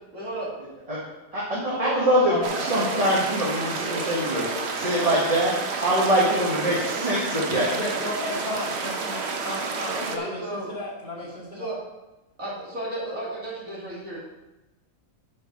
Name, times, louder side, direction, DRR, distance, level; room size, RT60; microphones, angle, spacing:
voice 1, 0.1-0.5 1.7-2.8 3.7-4.0 6.5-7.2 9.9-10.7 11.5-11.8 12.4-14.2, right 1 dB, 70° right, -6 dB, 3.3 m, -34 dB
voice 2, 1.3-2.4 2.7-7.7, equal, 25° right, -6 dB, 1.7 m, -24 dB
voice 3, 2.1-3.2 7.5-11.7, left 1 dB, 30° left, -5 dB, 2.8 m, -33 dB
sound 1, 2.4-10.2, right 4 dB, 55° right, 1.1 m, -30 dB
9.2 x 5.2 x 5.9 m, 1.0 s
omnidirectional pair, 1.5 m